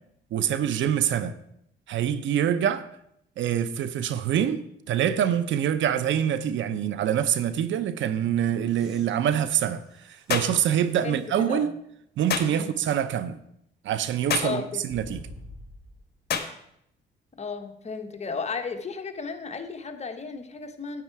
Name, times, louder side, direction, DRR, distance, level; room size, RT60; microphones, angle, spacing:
voice 1, 0.3-1.4 1.9-2.9 3.4-4.6 4.9-11.7 12.2-13.4 13.8-15.2, right 9 dB, 70° right, 0.8 m, -25 dB
sound 1, 8.7-11.4 12.1-12.2 14.9-16.1 17.9-18.0, equal, ahead, 4.8 m, -48 dB
sound 2, 10.3-10.6 12.3-12.5 14.3-14.6 16.3-16.5, left 7 dB, 55° left, 1.3 m, -27 dB
voice 2, 11.0-11.7 12.5-12.7 14.4-14.8 17.4-21.0, left 5 dB, 35° left, 1.3 m, -34 dB
9.4 x 8.7 x 4.7 m
cardioid pair, 90°, 20 cm